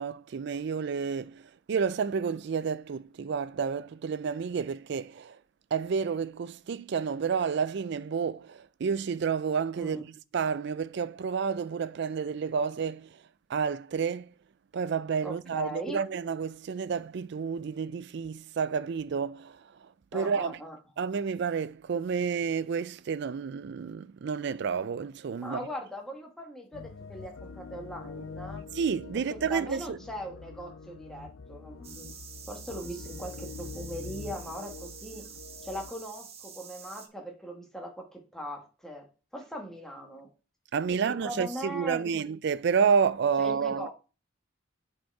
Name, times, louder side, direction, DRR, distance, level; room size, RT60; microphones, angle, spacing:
voice 1, 0.0-5.4 5.7-10.0 10.3-13.1 13.5-14.3 14.7-19.6 20.1-20.6 21.0-25.6 28.7-30.0 40.7-43.9, right 6 dB, 60° right, 0.4 m, -30 dB
voice 2, 15.2-16.0 20.1-20.8 25.4-28.7 29.3-32.1 32.5-35.2 35.6-39.1 39.3-40.3 40.9-42.2 43.4-43.9, equal, 5° left, 1.4 m, -40 dB
sound 1, 26.7-35.9, left 4 dB, 85° left, 0.5 m, -44 dB
sound 2, 31.8-37.1, right 7 dB, 30° right, 0.8 m, -47 dB
7.6 x 4.5 x 4.6 m
head